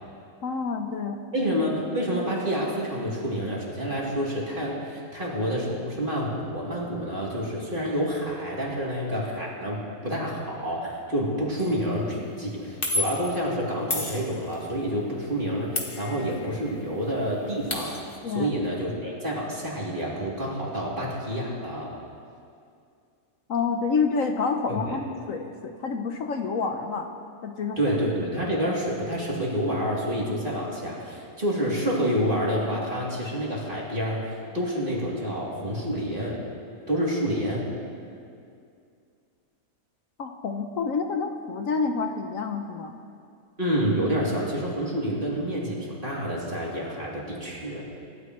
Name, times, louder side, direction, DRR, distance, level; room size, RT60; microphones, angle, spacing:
voice 1, 0.4-1.2 18.2-18.5 23.5-27.1 27.4-27.8 28.4-28.5 40.2-43.0, left 5 dB, 65° left, 4 dB, 1.2 m, -28 dB
voice 2, 1.3-18.0 18.3-21.9 24.7-25.0 27.8-36.4 36.9-37.7 43.6-47.8, equal, 35° right, -5 dB, 3.2 m, -28 dB
sound 1, 11.6-11.8 12.8-13.4 13.9-14.7 15.8-16.6 16.9-17.0 17.3-18.2, left 2 dB, 40° left, 1.6 m, -31 dB
27.0 x 13.0 x 3.2 m, 2.4 s
omnidirectional pair, 1.6 m